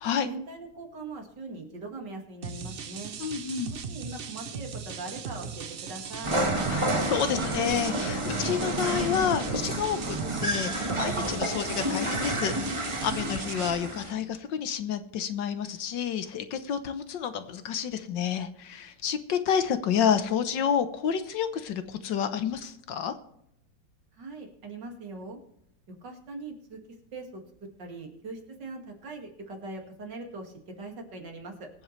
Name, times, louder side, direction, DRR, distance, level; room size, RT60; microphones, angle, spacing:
voice 1, 0.3-3.2 3.9-6.4 24.2-25.4 26.0-26.8 27.1-27.4 27.8-31.7, right 3 dB, 65° right, 2 dB, 2.8 m, -41 dB
sound 1, 2.4-13.7, right 6 dB, 85° right, 0.5 m, -38 dB
voice 2, 3.2-3.7 6.7-12.5 12.8-23.1, left 8 dB, 70° left, 10 dB, 1.6 m, -29 dB
sound 2, 6.2-14.1, right 1 dB, 15° right, 1.3 m, -30 dB
23.5 x 7.8 x 3.2 m, 0.75 s
omnidirectional pair, 2.1 m